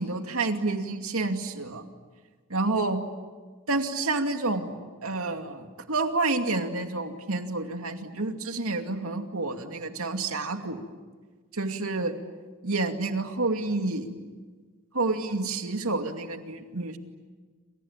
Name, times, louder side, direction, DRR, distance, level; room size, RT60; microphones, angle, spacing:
voice 1, 0.0-1.8 2.5-3.0 3.7-4.7 5.0-10.9 11.5-12.2 12.6-14.2 14.9-17.0, right 3 dB, 90° right, 5 dB, 2.5 m, -29 dB
28.5 x 27.5 x 7.4 m, 1.5 s
head